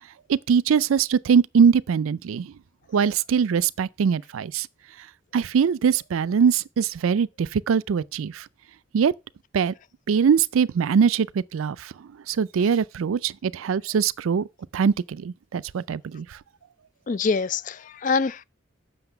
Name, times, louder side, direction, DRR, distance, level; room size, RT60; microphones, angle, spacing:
voice 1, 0.3-2.5 2.9-4.7 5.3-8.4 8.9-9.1 9.5-9.7 10.1-11.3 11.5-11.9 12.3-14.5 14.7-16.3, right 6 dB, 90° right, 0.4 m, -22 dB
voice 2, 17.1-18.4, left 4 dB, 40° left, 0.4 m, -25 dB
7.9 x 6.2 x 5.7 m
head